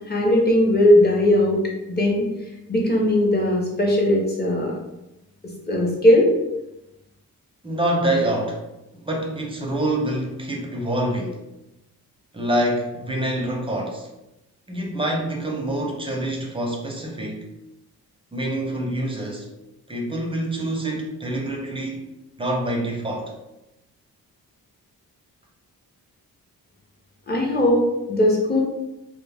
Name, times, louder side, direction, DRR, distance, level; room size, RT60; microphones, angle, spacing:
voice 1, 0.1-1.6 1.9-2.3 2.7-4.7 5.7-6.3 27.3-28.6, left 1 dB, 25° left, -2 dB, 0.6 m, -18 dB
voice 2, 7.6-8.7 9.0-11.4 12.3-14.1 14.7-17.5 18.3-19.5 19.9-22.1 22.4-23.3, right 1 dB, 15° right, -1 dB, 0.5 m, -26 dB
2.1 x 2.0 x 3.3 m, 0.93 s
wide cardioid pair, 100°, 38 cm